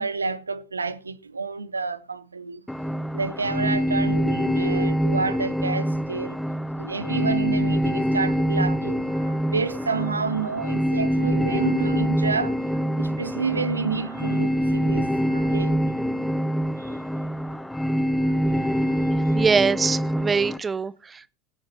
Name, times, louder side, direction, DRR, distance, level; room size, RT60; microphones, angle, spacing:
voice 1, 0.0-2.6 3.1-6.4 6.8-12.6 13.0-15.9 16.8-17.0 18.3-19.4, right 4 dB, 80° right, 0.7 m, -29 dB
sound 1, 2.7-20.6, equal, 5° left, 0.8 m, -25 dB
sound 2, 11.1-16.3, right 8 dB, 50° left, 4.2 m, -43 dB
voice 2, 19.3-21.3, right 5 dB, 20° right, 0.5 m, -23 dB
23.0 x 8.8 x 2.7 m
figure-of-eight pair, 75°, 0 cm